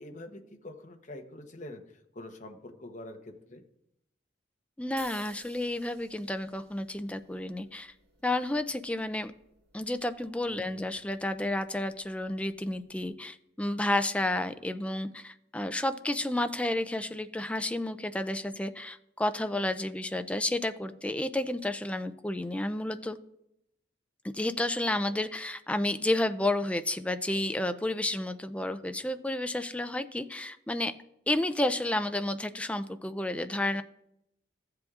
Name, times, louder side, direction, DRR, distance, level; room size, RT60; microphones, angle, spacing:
voice 1, 0.0-3.6 10.5-10.8, left 1 dB, 40° left, 5 dB, 0.9 m, -45 dB
voice 2, 4.8-7.9 8.2-9.3 9.7-23.2 24.2-30.9 31.3-33.8, left 1 dB, 5° left, 10 dB, 0.4 m, -31 dB
sound 1, 5.0-13.1, right 3 dB, 65° right, 2.2 m, -57 dB
14.5 x 7.7 x 2.4 m, 0.80 s
head